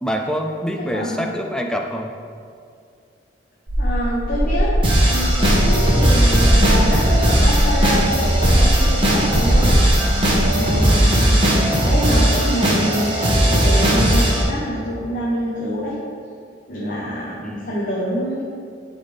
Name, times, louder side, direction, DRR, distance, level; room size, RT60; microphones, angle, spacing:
voice 1, 0.0-2.1 10.3-10.8 17.4-17.7, equal, 5° left, 2 dB, 0.4 m, -26 dB
voice 2, 0.8-1.3 3.8-4.8 5.1-9.8 10.5-11.3 11.8-16.0 16.7-18.4, equal, 50° left, -6 dB, 1.0 m, -26 dB
sound 1, 3.7-10.5, equal, 55° right, 1.3 m, -21 dB
sound 2, 4.8-14.4, right 1 dB, 25° right, 1.2 m, -17 dB
11.0 x 4.1 x 3.4 m, 2.3 s
head